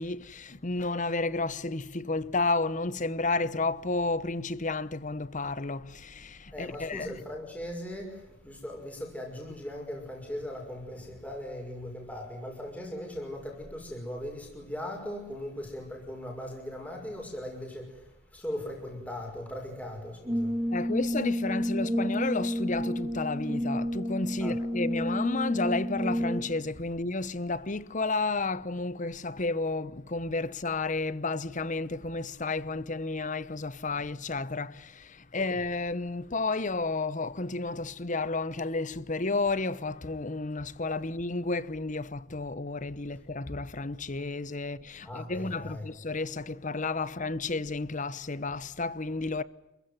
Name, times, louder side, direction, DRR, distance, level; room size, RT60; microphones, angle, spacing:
voice 1, 0.0-7.1 20.7-49.4, left 3 dB, 40° left, 1.0 m, -32 dB
voice 2, 6.5-20.5 24.4-24.6 35.4-35.5 45.0-45.9, left 1 dB, 5° left, 5.8 m, -39 dB
Brass instrument, 20.3-26.7, equal, 20° right, 2.1 m, -30 dB
28.5 x 15.5 x 9.6 m
head